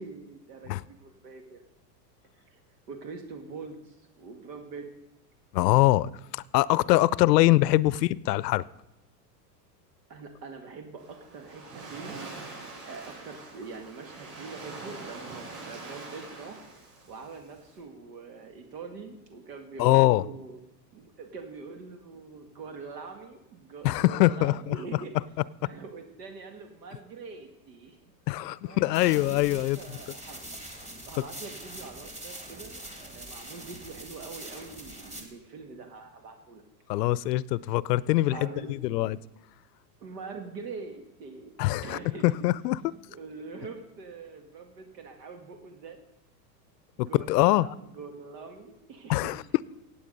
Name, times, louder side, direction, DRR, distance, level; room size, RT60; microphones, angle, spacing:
voice 1, 0.0-1.6 2.3-2.6 2.9-4.9 10.1-12.2 12.9-16.6 17.1-20.6 20.9-25.1 25.6-28.0 28.6-30.4 31.0-36.6 38.3-39.1 40.0-41.5 41.8-42.3 43.1-46.0 47.0-49.4, right 4 dB, 70° right, 2.0 m, -44 dB
voice 2, 5.5-8.6 19.8-20.2 23.8-24.8 28.3-29.8 36.9-39.2 41.6-42.8 47.0-47.7 49.1-49.4, left 17 dB, 70° left, 0.6 m, -23 dB
Waves surf, 11.0-17.8, right 3 dB, 30° right, 6.0 m, -44 dB
sound 1, 28.9-35.2, right 1 dB, 15° right, 2.0 m, -43 dB
16.0 x 8.5 x 5.3 m
supercardioid pair, 140°, 50 cm